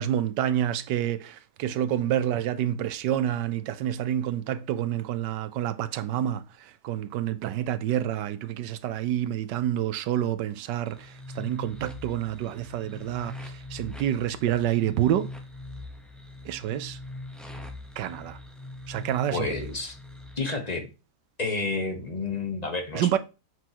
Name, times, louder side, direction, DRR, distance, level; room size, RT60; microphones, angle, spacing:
voice 1, 0.0-15.3 16.4-17.0 18.0-18.4 18.9-19.5 22.9-23.2, right 11 dB, 85° right, 1.3 m, -28 dB
sound 1, 10.9-20.4, left 2 dB, ahead, 0.7 m, -42 dB
voice 2, 19.3-19.9 20.4-20.9 21.4-23.2, left 3 dB, 25° left, 1.2 m, -30 dB
8.0 x 6.2 x 3.0 m
omnidirectional pair, 1.8 m